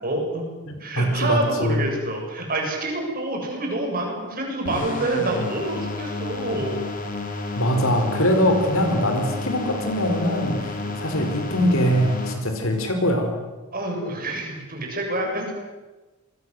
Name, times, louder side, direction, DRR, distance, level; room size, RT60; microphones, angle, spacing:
voice 1, 0.0-0.4 0.8-6.8 10.8-10.9 13.7-15.5, right 1 dB, 40° right, 1 dB, 7.5 m, -27 dB
voice 2, 0.7-1.8 7.6-13.3, equal, 65° left, 5 dB, 4.9 m, -22 dB
sound 1, 4.7-12.3, left 2 dB, 35° left, 3.9 m, -31 dB
27.5 x 21.5 x 8.1 m, 1.2 s
head